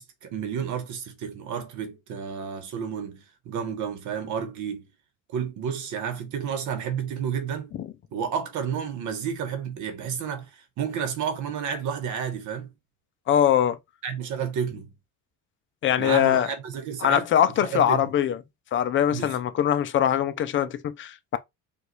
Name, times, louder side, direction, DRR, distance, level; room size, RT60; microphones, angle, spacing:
voice 1, 0.0-4.9 5.3-7.8 8.1-12.7 14.0-14.9 16.0-17.3 17.6-18.1 19.1-19.4, right 7 dB, 55° right, 1.1 m, -31 dB
voice 2, 13.3-13.8 15.8-16.5 17.0-18.4 18.7-21.4, left 10 dB, 35° left, 0.5 m, -22 dB
5.1 x 2.5 x 3.1 m
cardioid pair, 145°, 35 cm